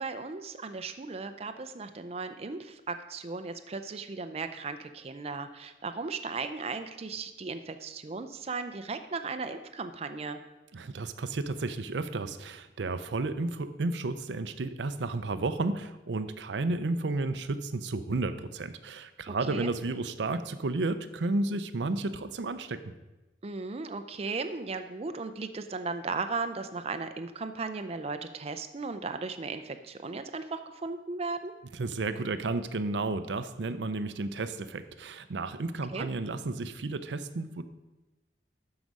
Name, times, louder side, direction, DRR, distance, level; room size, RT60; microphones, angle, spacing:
voice 1, 0.0-10.4 19.3-19.7 23.4-31.5 35.9-36.1, right 4 dB, 35° right, 8 dB, 0.5 m, -36 dB
voice 2, 10.7-22.8 31.7-37.6, right 3 dB, 80° right, 11 dB, 0.6 m, -32 dB
12.5 x 4.9 x 5.3 m, 1.1 s
head